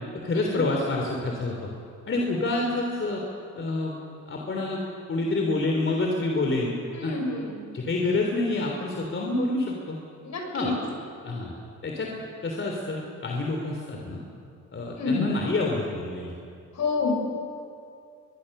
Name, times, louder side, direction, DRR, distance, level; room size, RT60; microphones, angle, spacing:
voice 1, 0.1-1.7 2.1-3.2 3.5-3.9 4.3-4.8 5.1-6.7 7.0-7.1 7.7-10.0 10.5-10.7 11.2-11.5 11.8-12.1 12.4-14.2 14.7-16.4, left 2 dB, 40° left, 0 dB, 3.3 m, -27 dB
voice 2, 6.9-7.6 10.2-10.7 15.0-15.3 16.7-17.1, left 4 dB, 60° left, 1 dB, 6.6 m, -28 dB
22.5 x 22.5 x 6.7 m, 2.4 s
cardioid pair, 90°, 32 cm